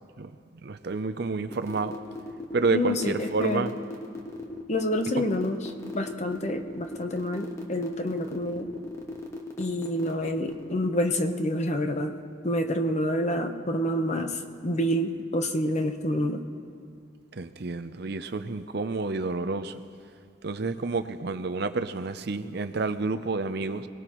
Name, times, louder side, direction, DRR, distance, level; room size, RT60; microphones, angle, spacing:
voice 1, 0.6-1.9 2.5-3.7 17.3-19.8 20.4-23.9, right 3 dB, 55° right, 9 dB, 0.6 m, -29 dB
sound 1, 1.5-10.8, left 2 dB, 15° left, 1.3 m, -38 dB
voice 2, 2.7-3.7 4.7-8.7 9.6-12.2 12.4-16.4, left 1 dB, 35° left, 6 dB, 0.9 m, -28 dB
25.0 x 18.5 x 3.1 m, 2.3 s
head